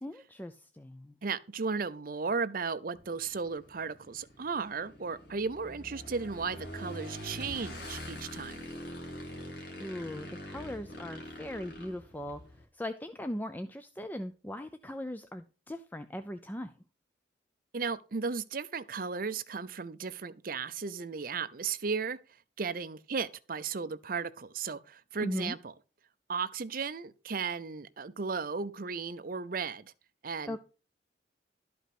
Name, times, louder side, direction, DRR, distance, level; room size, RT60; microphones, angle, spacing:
voice 1, 0.0-1.1 9.8-12.4 12.7-16.7 25.2-25.5 30.5-30.6, left 1 dB, 10° left, 0.4 m, -39 dB
voice 2, 1.2-8.7 17.7-22.2 22.6-25.7 26.3-29.9 30.2-30.6, right 5 dB, 50° right, 0.6 m, -35 dB
Motorcycle / Engine, 2.9-12.6, equal, 60° left, 2.3 m, -44 dB
12.0 x 5.2 x 5.9 m
head